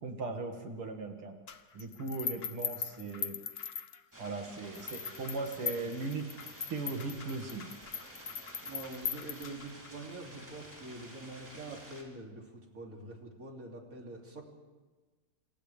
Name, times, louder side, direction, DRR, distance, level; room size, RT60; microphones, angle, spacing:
voice 1, 0.0-1.4 1.7-3.4 4.2-6.3 6.7-7.7, right 3 dB, 85° right, 3 dB, 3.1 m, -38 dB
sound 1, 1.5-4.3 4.7-9.9, left 7 dB, 70° left, 0.5 m, -40 dB
sound 2, 4.1-12.0, right 1 dB, 10° right, 3.3 m, -51 dB
voice 2, 8.6-14.4, right 2 dB, 40° right, 0 dB, 3.4 m, -45 dB
28.0 x 27.5 x 3.5 m, 1.3 s
omnidirectional pair, 2.3 m